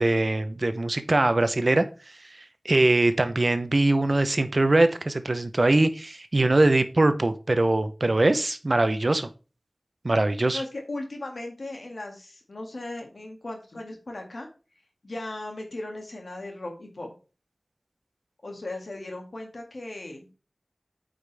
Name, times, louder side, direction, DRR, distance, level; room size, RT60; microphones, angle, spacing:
voice 1, 0.0-1.8 2.6-9.3 10.0-10.6, right 2 dB, 55° right, 11 dB, 0.7 m, -22 dB
voice 2, 10.5-14.5 15.0-17.1 18.4-20.3, left 2 dB, 80° left, 2 dB, 2.0 m, -37 dB
8.7 x 5.2 x 3.4 m, 0.33 s
wide cardioid pair, 45°, 0 cm